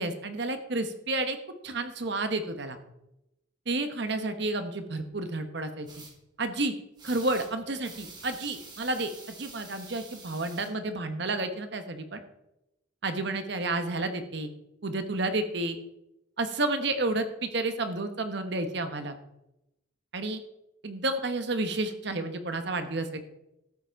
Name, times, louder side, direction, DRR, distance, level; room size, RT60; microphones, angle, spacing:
voice 1, 0.0-1.4 1.6-2.8 3.7-5.9 6.4-6.7 7.0-9.1 9.4-12.2 13.0-14.5 14.8-15.8 16.4-19.1 20.1-20.4 20.8-23.2, right 2 dB, 60° right, 8 dB, 1.1 m, -30 dB
sound 1, 5.9-6.1 7.0-7.5 7.8-10.7, right 3 dB, 20° right, 1.9 m, -47 dB
13.0 x 7.6 x 4.6 m, 0.87 s
head